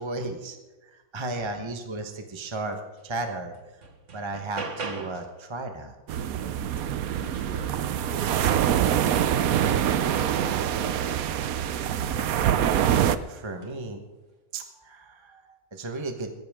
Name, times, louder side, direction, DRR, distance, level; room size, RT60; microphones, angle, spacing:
voice 1, 0.0-3.8 4.1-5.9 12.7-14.0 14.5-16.3, right 2 dB, 20° right, 4 dB, 1.1 m, -35 dB
sound 1, 3.0-3.1 3.5-5.4 7.7-7.8 8.3-11.2 11.9-12.5 13.5-13.8, right 4 dB, 55° right, 1.6 m, -40 dB
sound 2, 6.1-13.2, right 10 dB, 70° right, 1.1 m, -25 dB
voice 2, 7.2-9.1 9.6-12.3 13.6-13.7, equal, 45° left, -2 dB, 4.6 m, -45 dB
20.5 x 15.0 x 3.7 m, 1.2 s
omnidirectional pair, 1.6 m